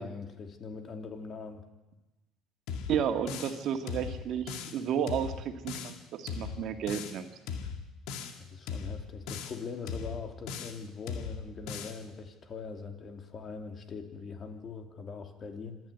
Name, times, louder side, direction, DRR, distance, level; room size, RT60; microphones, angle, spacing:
voice 1, 0.0-1.6 8.4-15.8, left 5 dB, 45° left, 4 dB, 3.2 m, -42 dB
sound 1, 2.7-3.6 3.9-4.8 5.1-6.0 6.3-7.2 7.5-8.4 8.7-9.6 9.9-10.8 11.1-12.0, left 6 dB, 70° left, 2.1 m, -38 dB
voice 2, 2.9-7.3, right 8 dB, 60° right, 6 dB, 2.1 m, -32 dB
26.0 x 11.0 x 9.4 m, 1.1 s
hypercardioid pair, 70°, 0 cm